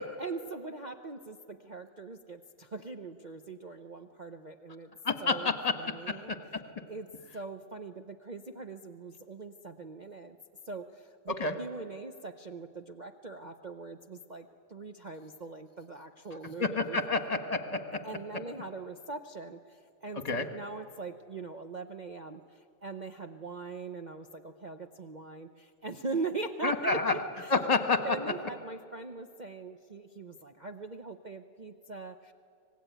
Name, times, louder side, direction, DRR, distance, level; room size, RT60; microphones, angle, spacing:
voice 1, 0.2-4.9 5.2-6.3 6.9-10.4 10.7-17.0 18.0-27.6 28.0-32.3, right 3 dB, 55° right, 5 dB, 0.4 m, -41 dB
voice 2, 5.0-6.6 11.4-11.5 16.6-18.0 20.2-20.4 26.6-27.2 27.5-28.2, left 3 dB, 25° left, 8 dB, 1.3 m, -29 dB
25.0 x 19.5 x 9.2 m, 2.5 s
omnidirectional pair, 1.9 m